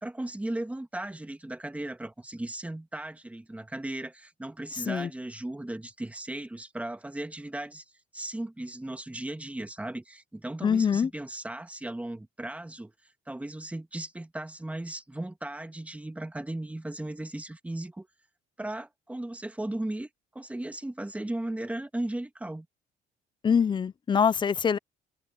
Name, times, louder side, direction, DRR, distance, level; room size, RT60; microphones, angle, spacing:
voice 1, 0.0-7.9 8.1-12.9 13.3-18.1 18.6-22.7, right 1 dB, 10° right, 1.8 m, -36 dB
voice 2, 10.6-11.1 23.4-24.8, left 6 dB, 30° left, 0.6 m, -24 dB
cardioid pair, 110°, 17 cm